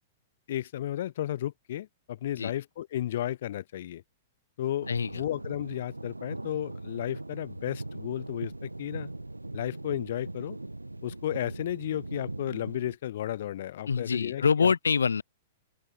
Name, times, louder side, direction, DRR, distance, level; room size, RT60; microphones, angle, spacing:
voice 1, 0.5-4.0 4.6-4.9 5.1-9.1 9.5-10.6 11.0-14.7, left 12 dB, 55° left, 3.1 m, -33 dB
sound 1, 4.8-13.0, right 2 dB, 90° right, 3.4 m, -40 dB
voice 2, 4.9-5.2 13.9-15.2, left 6 dB, 75° left, 3.9 m, -25 dB
open air
figure-of-eight pair, 105°, 0 cm